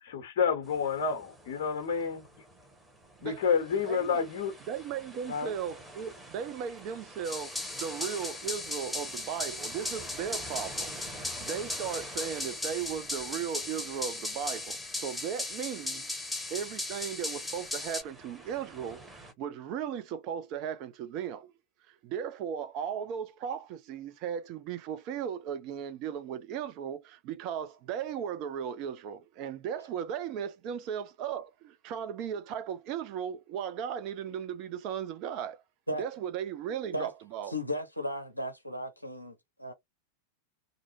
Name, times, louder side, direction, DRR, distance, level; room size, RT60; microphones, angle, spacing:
voice 1, 0.0-2.3 3.2-4.5 5.3-5.5, left 6 dB, 50° left, 0.7 m, -29 dB
sound 1, 0.6-19.3, right 1 dB, 10° right, 1.0 m, -50 dB
voice 2, 4.7-16.1 16.5-21.5 21.9-35.6 36.0-37.5, right 8 dB, 40° right, 0.5 m, -36 dB
sound 2, 7.2-18.0, left 2 dB, 5° left, 0.7 m, -37 dB
voice 3, 37.5-39.7, equal, 90° left, 0.5 m, -35 dB
2.5 x 2.1 x 2.6 m
figure-of-eight pair, 90°, 0 cm